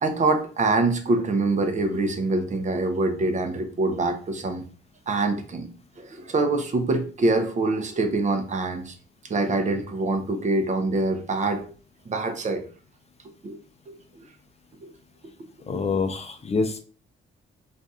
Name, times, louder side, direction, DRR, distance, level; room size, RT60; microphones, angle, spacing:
voice 1, 0.0-4.7 5.1-5.7 6.0-8.9 9.3-11.7 12.1-12.6 13.4-13.6 13.9-14.0 14.8-14.9 15.7-15.8, right 2 dB, 40° right, 6 dB, 0.6 m, -25 dB
voice 2, 15.7-16.8, left 4 dB, 30° left, 5 dB, 0.5 m, -26 dB
2.5 x 2.3 x 4.1 m, 0.39 s
cardioid pair, 90°, 20 cm